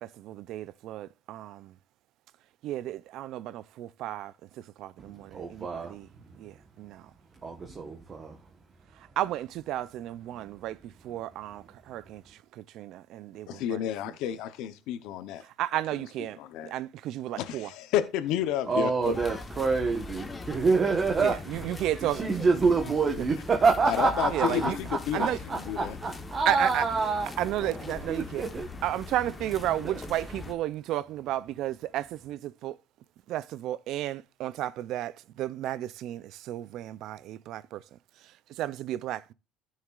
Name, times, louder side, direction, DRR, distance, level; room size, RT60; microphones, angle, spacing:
voice 1, 0.0-1.7 2.6-4.3 4.8-6.1 6.4-7.0 9.2-10.8 11.0-12.2 12.6-13.8 15.6-16.4 16.6-17.7 21.2-22.2 24.3-24.7 25.1-25.4 26.5-26.8 27.4-28.4 28.8-32.8 33.3-37.8 38.6-39.3, right 13 dB, 60° right, 0.4 m, -33 dB
voice 2, 5.0-5.9 6.3-6.4 7.4-8.4 18.7-21.7 22.0-27.3 28.1-28.7 29.8-30.0, right 4 dB, 30° right, 1.1 m, -27 dB
voice 3, 13.5-15.4 15.9-16.7 17.4-19.2 23.9-26.0, left 11 dB, 75° left, 0.8 m, -31 dB
sound 1, 19.0-30.5, left 3 dB, 15° left, 1.1 m, -41 dB
14.5 x 6.3 x 2.4 m
cardioid pair, 140°, 0 cm